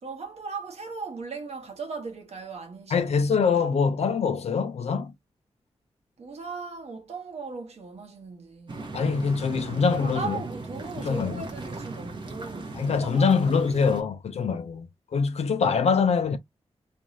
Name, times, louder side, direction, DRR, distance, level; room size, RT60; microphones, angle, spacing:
voice 1, 0.0-3.4 6.2-8.9 9.9-12.8 13.0-13.3, right 4 dB, 70° right, 1.0 m, -38 dB
voice 2, 2.9-5.1 8.9-10.4 11.0-11.4 12.8-14.9 15.1-16.4, left 5 dB, 70° left, 0.5 m, -24 dB
sound 1, 8.7-14.0, right 3 dB, 45° right, 0.7 m, -38 dB
2.6 x 2.2 x 3.0 m
wide cardioid pair, 170°, 11 cm